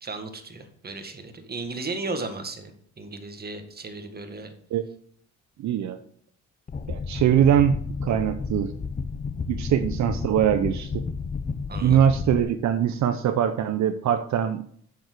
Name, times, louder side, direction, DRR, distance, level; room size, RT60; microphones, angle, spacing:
voice 1, 0.0-4.5 11.7-12.0, right 3 dB, 30° right, 6 dB, 1.8 m, -35 dB
voice 2, 5.6-6.0 6.9-7.8 8.0-8.7 9.5-11.1 11.8-14.6, right 9 dB, 70° right, 9 dB, 0.7 m, -22 dB
sound 1, 6.7-12.4, left 4 dB, 25° left, 0.7 m, -32 dB
7.6 x 7.1 x 6.7 m, 0.62 s
cardioid pair, 90°, 30 cm